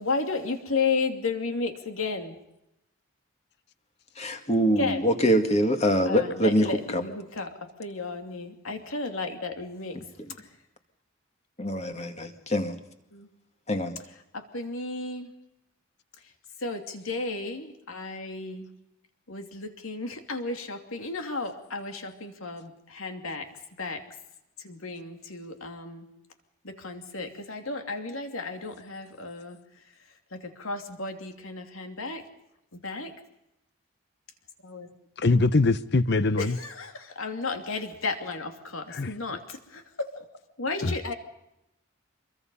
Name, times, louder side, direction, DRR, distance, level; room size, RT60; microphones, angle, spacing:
voice 1, 0.0-2.4 4.8-5.1 6.1-10.1 10.4-10.6 13.1-13.3 14.3-15.3 16.2-16.3 16.6-18.7 19.3-23.5 23.8-24.2 24.6-26.1 26.6-29.9 30.3-32.3 32.7-33.1 34.6-34.9 36.4-40.3 40.6-41.1, left 3 dB, 75° left, 2.8 m, -33 dB
voice 2, 4.2-7.0 11.6-12.8 13.7-14.0, equal, 30° left, 2.0 m, -24 dB
voice 3, 35.2-36.6 38.9-39.1 40.8-40.9, left 3 dB, 50° left, 0.8 m, -22 dB
25.0 x 23.0 x 5.5 m
head